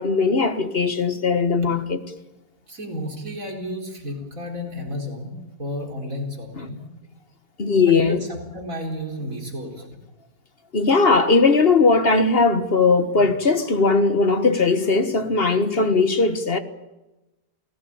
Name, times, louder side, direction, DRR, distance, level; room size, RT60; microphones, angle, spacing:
voice 1, 0.0-2.0 6.6-6.7 7.6-8.2 10.7-16.6, left 4 dB, 35° left, 1.5 m, -19 dB
voice 2, 2.7-6.8 7.9-10.0, equal, 55° right, 4.5 m, -32 dB
28.0 x 17.5 x 8.7 m
omnidirectional pair, 1.7 m